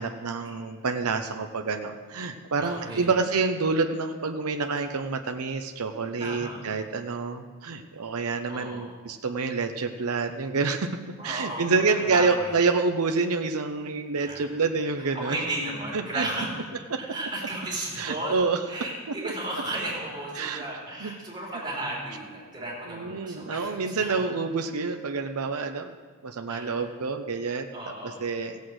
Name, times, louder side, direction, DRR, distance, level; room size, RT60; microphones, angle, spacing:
voice 1, 0.0-10.9 11.2-15.4 15.9-16.3 16.9-17.0 18.0-18.6 19.2-19.3 20.4-20.6 21.0-21.1 22.9-26.0 26.2-28.6, right 4 dB, 85° right, 6 dB, 0.8 m, -28 dB
voice 2, 2.6-3.1 6.2-6.6 8.5-8.9 11.2-12.5 14.2-14.5 15.0-16.5 17.0-24.2 26.5-26.9 27.7-28.2, right 1 dB, 20° right, -5 dB, 4.0 m, -34 dB
16.0 x 8.4 x 6.4 m, 1.5 s
head